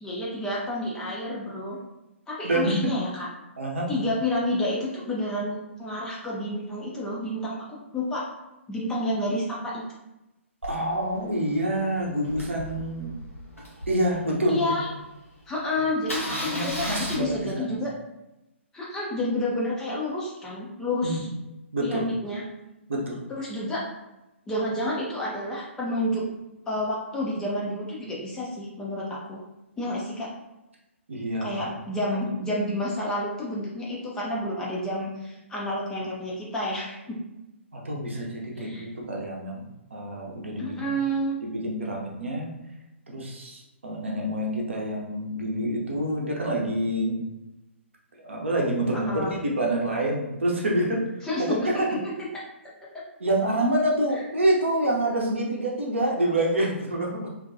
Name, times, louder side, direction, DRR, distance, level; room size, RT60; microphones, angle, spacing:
voice 1, 0.0-1.8 2.3-3.3 3.9-8.2 8.7-9.8 14.5-14.9 15.5-17.9 18.7-21.3 21.8-22.4 23.4-23.8 24.5-26.2 26.7-29.4 29.8-30.3 31.4-37.2 38.6-38.9 40.6-41.4 48.9-49.3 51.2-52.0, left 1 dB, 10° left, -5 dB, 0.4 m, -29 dB
voice 2, 2.4-2.8 3.6-3.9 10.6-13.1 13.9-14.7 16.4-17.8 21.0-21.2 21.7-22.1 22.9-23.2 31.1-31.6 37.7-39.6 39.9-40.7 41.4-42.5 43.1-47.2 48.2-51.0 51.4-52.0 53.2-57.1, right 1 dB, 65° right, -2 dB, 0.6 m, -27 dB
Engine starting, 10.6-14.8 15.3-15.4 15.6-15.7 16.0-17.2, equal, 85° left, 0.7 m, -35 dB
2.6 x 2.2 x 2.5 m, 0.96 s
figure-of-eight pair, 125°, 7 cm